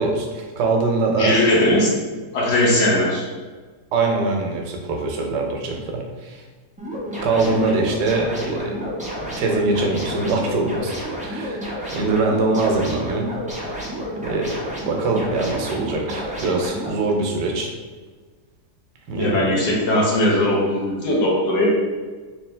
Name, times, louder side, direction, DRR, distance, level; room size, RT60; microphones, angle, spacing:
voice 1, 0.0-1.9 3.9-6.4 7.2-8.9 9.2-10.9 11.2-11.7 11.9-13.3 13.6-17.7 19.1-19.6, right 3 dB, 85° right, 2 dB, 1.3 m, -23 dB
voice 2, 1.2-1.9 2.3-3.2 19.1-21.7, left 1 dB, 85° left, -4 dB, 1.5 m, -19 dB
sound 1, 6.8-16.9, equal, 10° right, 0.3 m, -30 dB
3.4 x 3.1 x 3.2 m, 1.4 s
omnidirectional pair, 1.7 m